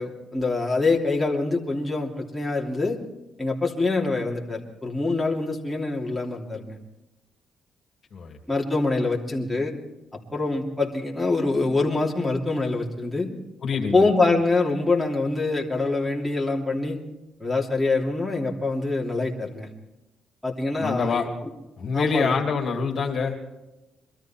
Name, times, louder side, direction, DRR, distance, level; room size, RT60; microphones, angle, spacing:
voice 1, 0.0-3.0 3.4-6.8 8.5-9.7 10.3-13.3 13.9-17.0 17.4-19.7 20.4-21.2 21.9-22.4, left 3 dB, 10° left, -3 dB, 3.0 m, -25 dB
voice 2, 13.6-14.0 20.8-21.3 21.8-23.4, left 5 dB, 50° left, 1 dB, 2.7 m, -25 dB
23.0 x 13.0 x 4.5 m, 1.0 s
cardioid pair, 90°, 0 cm